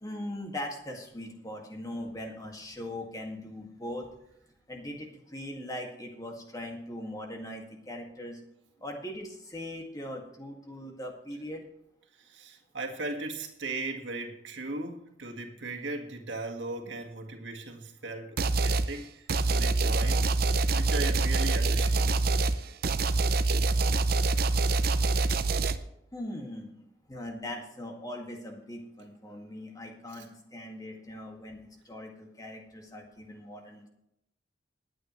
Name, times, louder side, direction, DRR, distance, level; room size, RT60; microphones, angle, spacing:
voice 1, 0.0-4.1 4.7-8.4 8.8-11.6 26.1-33.9, left 1 dB, 20° left, 2 dB, 2.0 m, -40 dB
voice 2, 12.1-20.3 20.7-22.2 30.1-30.3, right 2 dB, 80° right, 3 dB, 1.8 m, -38 dB
sound 1, 18.4-18.9 19.3-25.8, right 3 dB, 55° right, 0.7 m, -25 dB
20.0 x 8.9 x 3.2 m, 0.80 s
head